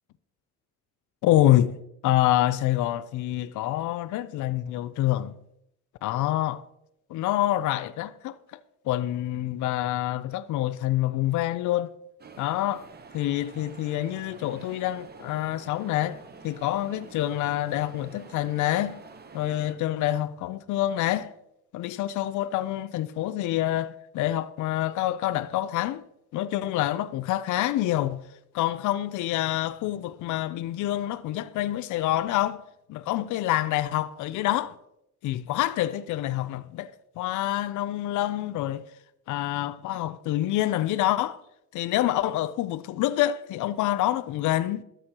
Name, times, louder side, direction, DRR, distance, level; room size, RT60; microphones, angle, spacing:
voice 1, 1.2-1.8 2.0-5.3 6.0-6.6 7.1-8.4 8.9-11.9 12.4-12.9 13.1-16.2 16.4-19.0 19.3-21.3 21.7-26.0 26.3-28.2 28.5-32.6 32.9-34.8 35.2-38.9 39.3-41.4 41.7-44.8, left 14 dB, 75° left, 0.5 m, -27 dB
sound 1, 12.2-19.7, right 4 dB, 35° right, 0.8 m, -48 dB
13.0 x 6.3 x 2.9 m
cardioid pair, 90°, 30 cm